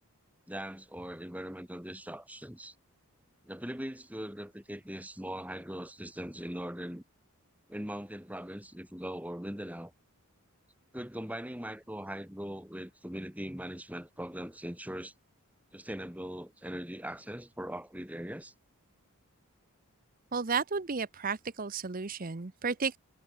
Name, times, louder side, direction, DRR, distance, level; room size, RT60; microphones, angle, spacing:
voice 1, 0.5-2.7 3.4-7.0 7.7-9.9 10.9-15.1 15.7-18.5, equal, 5° right, 3.6 m, -40 dB
voice 2, 20.3-23.0, right 5 dB, 40° right, 0.8 m, -33 dB
head